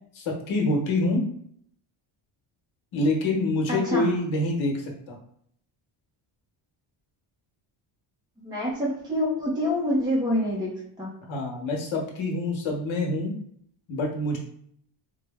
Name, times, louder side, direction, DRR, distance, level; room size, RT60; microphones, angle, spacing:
voice 1, 0.1-1.2 2.9-5.2 11.3-13.3 13.9-14.4, left 2 dB, 70° left, 0 dB, 1.1 m, -26 dB
voice 2, 3.7-4.1 8.4-10.7 11.0-11.1, left 1 dB, 10° right, -5 dB, 0.5 m, -26 dB
4.3 x 2.0 x 3.4 m, 0.67 s
cardioid pair, 175°, 49 cm